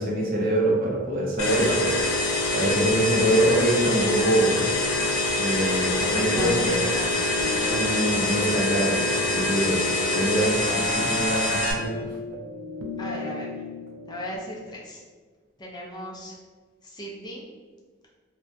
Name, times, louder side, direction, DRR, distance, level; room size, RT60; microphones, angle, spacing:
voice 1, 0.0-2.0 2.5-4.7 5.4-6.7 7.6-12.1, right 1 dB, 45° right, -3 dB, 0.6 m, -24 dB
sound 1, 1.4-11.7, left 2 dB, 90° left, 0.5 m, -25 dB
sound 2, 4.1-14.4, left 3 dB, 90° right, 0.4 m, -38 dB
voice 2, 5.8-7.6 13.0-13.5 14.1-15.0 15.6-16.4 16.8-17.5, equal, 20° left, -3 dB, 0.4 m, -37 dB
2.3 x 2.1 x 2.6 m, 1.5 s
head